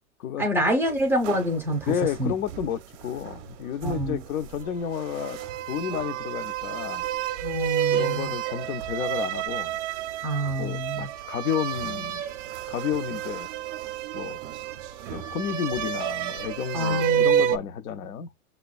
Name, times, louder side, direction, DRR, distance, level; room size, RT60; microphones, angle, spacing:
voice 1, 0.4-2.3 3.8-4.2 7.4-8.3 10.2-11.1 16.7-17.3, equal, 5° right, 0.4 m, -26 dB
sound 1, 1.0-3.5 3.8-17.6, right 10 dB, 60° right, 0.5 m, -30 dB
voice 2, 1.9-5.4 5.7-7.0 7.9-9.8 10.6-12.2 12.7-13.5 14.1-14.4 15.1-18.3, left 8 dB, 75° left, 0.5 m, -31 dB
5.9 x 2.2 x 2.3 m
hypercardioid pair, 120°, 43 cm